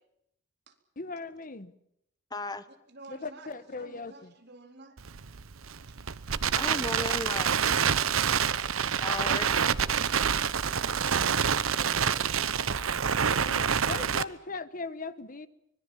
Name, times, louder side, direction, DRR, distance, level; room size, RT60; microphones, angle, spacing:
voice 1, 1.0-1.7 3.1-4.3 13.4-15.5, left 3 dB, 45° left, 14 dB, 1.3 m, -39 dB
voice 2, 2.3-2.6 6.5-7.6 9.0-9.7, left 2 dB, 20° left, 12 dB, 1.3 m, -35 dB
voice 3, 2.9-5.0 5.9-6.6 10.3-13.0, right 2 dB, 55° right, 5 dB, 3.8 m, -52 dB
Crackle, 5.0-14.2, right 7 dB, 85° right, 0.9 m, -27 dB
24.5 x 22.0 x 7.3 m, 0.76 s
head